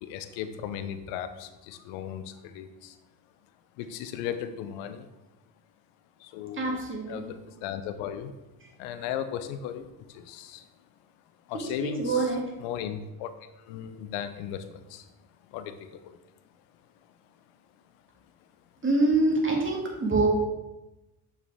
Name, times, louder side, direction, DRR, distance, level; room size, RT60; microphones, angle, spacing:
voice 1, 0.0-3.0 3.8-5.1 6.2-6.8 7.1-8.3 8.8-10.7 11.5-12.3 12.6-15.1 15.5-16.2, left 9 dB, 80° left, 10 dB, 0.7 m, -36 dB
voice 2, 6.6-7.3 11.8-12.4 18.8-20.3, right 2 dB, 25° right, -2 dB, 2.5 m, -25 dB
6.6 x 6.0 x 3.5 m, 1.0 s
supercardioid pair, 65°, 44 cm